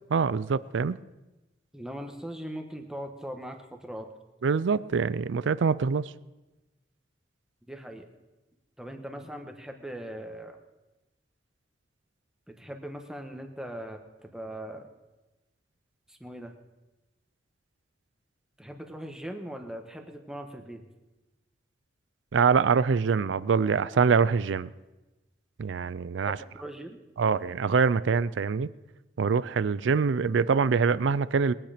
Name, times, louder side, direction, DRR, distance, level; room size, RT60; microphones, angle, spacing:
voice 1, 0.1-1.0 4.4-6.1 22.3-24.7 25.6-26.4 27.2-28.7 29.2-31.5, right 5 dB, 90° right, 17 dB, 0.4 m, -24 dB
voice 2, 1.7-4.1 7.7-8.1 8.8-10.6 12.5-14.0 14.3-14.9 16.1-16.5 18.6-20.9 26.3-27.0, equal, 5° right, 4 dB, 1.3 m, -40 dB
21.5 x 9.0 x 5.1 m, 1.1 s
head